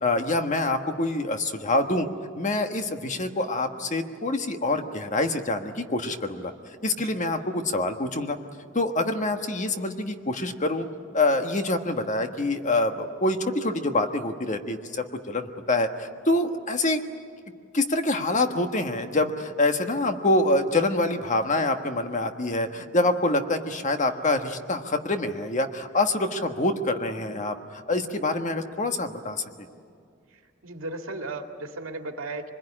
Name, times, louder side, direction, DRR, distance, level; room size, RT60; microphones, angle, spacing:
voice 1, 0.0-2.1 2.4-6.5 6.8-8.4 8.7-10.9 11.1-17.0 17.7-29.4, left 2 dB, 35° left, 6 dB, 1.4 m, -26 dB
voice 2, 6.9-7.2 30.3-32.5, right 2 dB, 80° right, 4 dB, 2.2 m, -36 dB
25.0 x 21.0 x 9.9 m, 2.3 s
head